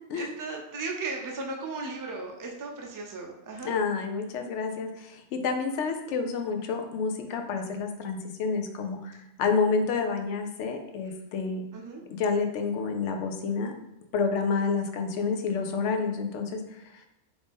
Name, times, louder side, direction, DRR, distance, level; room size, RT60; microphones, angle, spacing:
voice 1, 0.2-3.7 11.7-12.0, right 3 dB, 30° right, 1 dB, 0.4 m, -36 dB
voice 2, 3.6-11.6 12.1-13.7 14.1-17.1, left 5 dB, 85° left, 5 dB, 0.9 m, -29 dB
4.7 x 2.6 x 3.5 m, 0.85 s
omnidirectional pair, 1.2 m